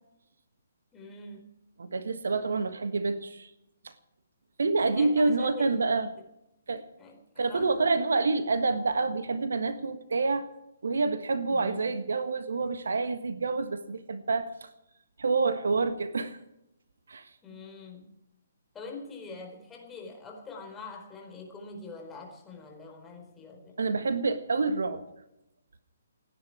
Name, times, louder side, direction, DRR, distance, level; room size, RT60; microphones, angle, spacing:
voice 1, 0.9-1.5 4.9-5.7 7.0-7.7 11.5-11.9 17.4-18.1 18.7-23.9, left 4 dB, 10° left, 1 dB, 4.3 m, -44 dB
voice 2, 1.8-3.5 3.8-3.9 4.6-6.1 6.7-6.8 7.4-10.5 10.8-14.7 15.2-16.4 17.1-17.3 23.8-25.0, right 3 dB, 65° right, 11 dB, 1.4 m, -27 dB
29.0 x 10.5 x 4.8 m, 0.87 s
figure-of-eight pair, 130°, 0 cm